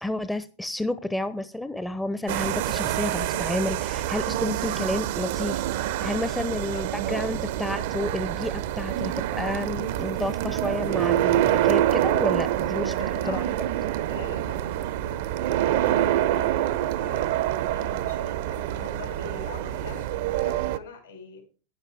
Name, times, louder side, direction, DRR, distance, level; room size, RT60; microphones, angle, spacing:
voice 1, 0.0-12.9 13.3-13.4, left 1 dB, 5° left, 12 dB, 0.6 m, -30 dB
sound 1, 2.3-20.8, right 13 dB, 55° right, 0.6 m, -26 dB
voice 2, 6.3-7.3 12.7-13.5 13.9-17.4 17.7-21.4, left 3 dB, 75° left, 3 dB, 4.7 m, -43 dB
11.0 x 10.0 x 3.5 m, 0.36 s
figure-of-eight pair, 90°, 0 cm